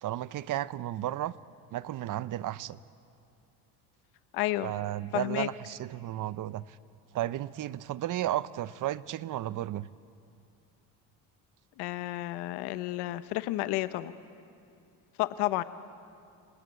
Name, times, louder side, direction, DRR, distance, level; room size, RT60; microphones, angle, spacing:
voice 1, 0.0-1.3 1.7-2.8 4.6-6.6 7.1-9.9, right 13 dB, 50° right, 17 dB, 0.8 m, -33 dB
voice 2, 4.3-4.7 5.1-5.5 11.8-14.1 15.2-15.6, left 17 dB, 80° left, 13 dB, 0.9 m, -31 dB
28.5 x 20.0 x 8.3 m, 2.5 s
supercardioid pair, 95°, 39 cm